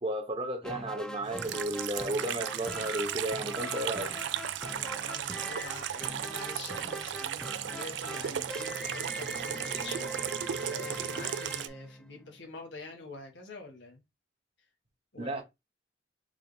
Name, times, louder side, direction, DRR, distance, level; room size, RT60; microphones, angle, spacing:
voice 1, 0.0-4.1 15.2-15.4, right 1 dB, 30° right, 0.8 m, -33 dB
sound 1, 0.6-12.5, equal, 5° left, 0.4 m, -42 dB
Water tap faucet / Sink (filling or washing), 1.3-11.7, right 10 dB, 70° right, 0.4 m, -36 dB
voice 2, 4.1-14.0 15.1-15.4, left 3 dB, 80° left, 1.5 m, -46 dB
4.7 x 2.4 x 3.3 m
head